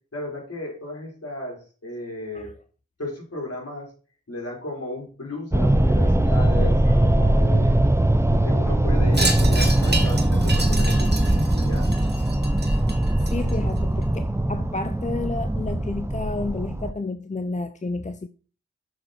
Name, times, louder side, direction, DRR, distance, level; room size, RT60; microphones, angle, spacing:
voice 1, 0.1-2.5 3.0-3.9 4.3-7.8 8.3-12.1, left 2 dB, 55° left, 4.6 m, -35 dB
sound 1, 5.5-16.9, right 1 dB, 10° right, 0.7 m, -21 dB
Wind chime, 9.1-13.8, right 2 dB, 35° right, 2.0 m, -30 dB
voice 2, 13.2-18.3, left 3 dB, 25° left, 0.6 m, -31 dB
6.8 x 6.5 x 4.4 m
cardioid pair, 40°, 30 cm